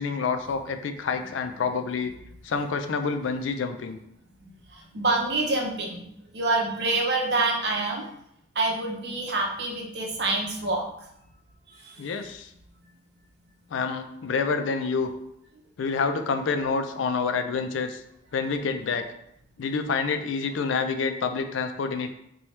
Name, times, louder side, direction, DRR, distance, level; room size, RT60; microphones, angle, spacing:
voice 1, 0.0-2.1 2.4-4.0 12.0-12.5 13.7-15.1 15.8-18.0 18.3-19.1 19.6-22.1, left 5 dB, 80° left, 7 dB, 0.4 m, -28 dB
voice 2, 4.9-6.1 6.3-8.0 8.6-10.8, right 2 dB, 60° right, -1 dB, 0.7 m, -26 dB
4.3 x 2.3 x 3.1 m, 0.76 s
head